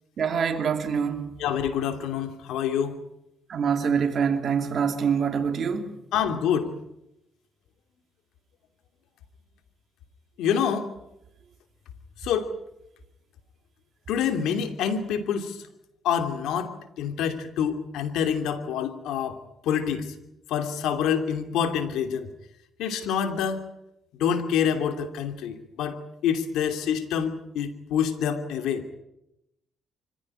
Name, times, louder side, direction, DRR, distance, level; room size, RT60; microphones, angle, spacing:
voice 1, 0.2-1.3 3.5-5.9, right 6 dB, 55° right, 2.7 m, -25 dB
voice 2, 1.4-3.0 6.1-6.7 10.4-10.9 12.2-12.5 14.1-15.6 16.0-20.1 20.5-22.3 22.8-23.6 24.2-26.0 26.2-28.8, left 8 dB, 85° left, 2.7 m, -27 dB
25.0 x 15.5 x 9.9 m
cardioid pair, 90°, 0 cm